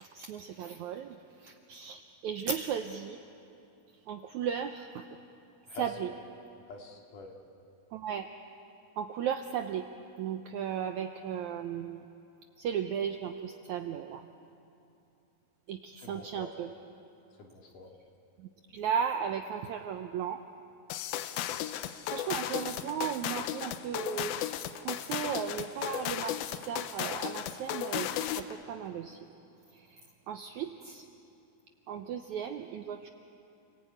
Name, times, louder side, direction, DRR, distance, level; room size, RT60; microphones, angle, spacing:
voice 1, 0.0-3.2 4.1-5.2 5.7-6.1 7.9-8.3 9.0-9.9 10.2-12.1 12.6-14.3 15.7-16.7 18.4-20.4 21.8-24.4 24.7-29.2 29.7-31.1 31.9-33.1, right 8 dB, 75° right, 6 dB, 1.7 m, -36 dB
voice 2, 5.7-6.2 6.7-7.3 16.0-16.5 17.4-17.9, left 3 dB, 60° left, 1 dB, 3.7 m, -45 dB
sound 1, 20.9-28.6, left 12 dB, 85° left, 2.7 m, -35 dB
29.5 x 19.5 x 9.2 m, 2.7 s
omnidirectional pair, 4.3 m